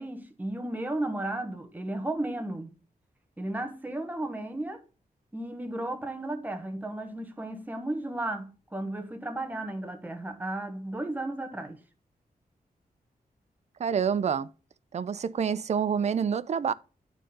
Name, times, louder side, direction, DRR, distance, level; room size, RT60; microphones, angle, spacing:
voice 1, 0.0-2.7 3.4-4.8 5.3-11.8, right 1 dB, 10° right, 1.1 m, -34 dB
voice 2, 13.8-14.5 14.9-16.7, right 7 dB, 45° right, 0.4 m, -27 dB
9.0 x 3.8 x 5.3 m
wide cardioid pair, 155°, 16 cm